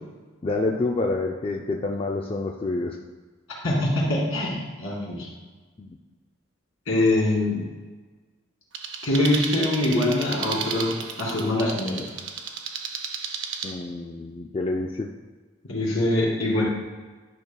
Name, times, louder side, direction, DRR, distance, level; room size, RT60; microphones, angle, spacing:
voice 1, 0.4-3.0 5.8-6.0 13.6-15.1, left 2 dB, 25° left, 1 dB, 0.3 m, -28 dB
voice 2, 3.6-5.3 6.9-7.6 9.0-12.1 15.7-16.7, left 1 dB, 75° left, -4 dB, 2.2 m, -23 dB
sound 1, 8.7-13.7, right 6 dB, 65° right, 0.6 m, -33 dB
10.5 x 5.3 x 2.3 m, 1.4 s
head